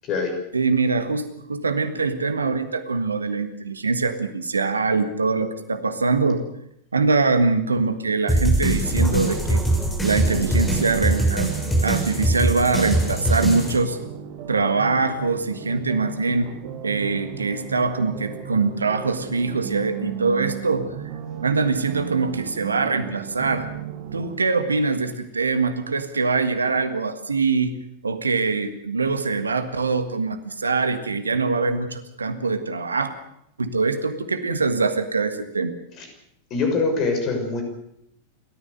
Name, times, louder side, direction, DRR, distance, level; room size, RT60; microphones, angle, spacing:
voice 1, 0.0-0.3 36.0-36.1 36.5-37.6, left 4 dB, 35° left, 5 dB, 6.4 m, -23 dB
voice 2, 0.5-6.4 6.9-9.6 10.0-11.6 11.8-14.0 14.5-16.5 16.8-20.9 21.4-23.7 24.1-27.8 28.0-33.1 33.6-35.7, right 4 dB, 75° right, 10 dB, 1.6 m, -23 dB
sound 1, 8.3-13.8, right 1 dB, 5° left, 6.5 m, -22 dB
sound 2, 10.2-24.4, right 8 dB, 45° right, 2.4 m, -35 dB
29.0 x 14.0 x 6.7 m, 0.75 s
figure-of-eight pair, 90°, 0 cm